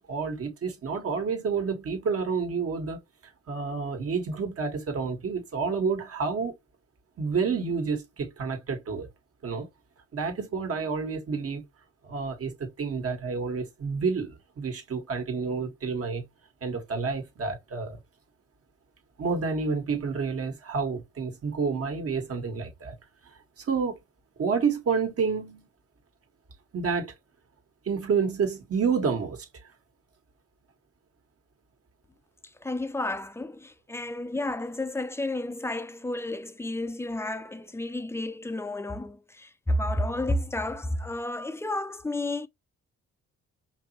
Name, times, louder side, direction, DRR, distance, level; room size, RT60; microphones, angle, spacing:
voice 1, 0.1-3.0 3.5-6.5 7.2-9.1 9.4-9.7 10.1-11.6 12.0-16.2 16.6-18.0 19.2-23.0 23.6-24.0 24.4-25.7 26.7-27.1 27.8-29.5, right 5 dB, 50° right, 1.6 m, -29 dB
voice 2, 32.4-42.5, left 1 dB, 10° left, 0.6 m, -31 dB
5.2 x 3.1 x 2.9 m
cardioid pair, 90°, 30 cm